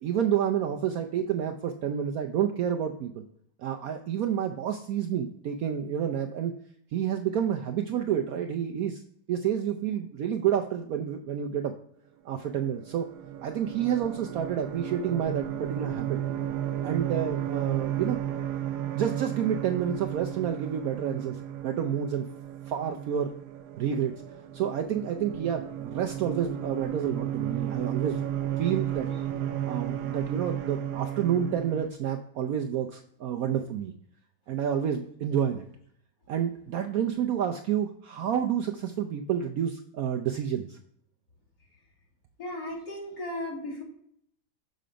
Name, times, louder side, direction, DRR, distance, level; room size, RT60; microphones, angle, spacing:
voice 1, 0.0-3.2 3.6-6.5 6.9-9.0 9.3-11.7 12.2-13.1 13.4-16.2 16.8-18.2 18.9-22.3 22.7-23.3 23.8-24.1 24.5-28.2 28.6-29.1 29.6-33.9 34.5-35.6 36.3-40.8, right 9 dB, 90° right, 5 dB, 0.7 m, -29 dB
sound 1, 12.4-31.9, right 11 dB, 70° right, 1.1 m, -34 dB
voice 2, 42.4-43.8, left 1 dB, 45° left, -4 dB, 3.0 m, -35 dB
6.7 x 5.2 x 5.0 m, 0.68 s
omnidirectional pair, 2.1 m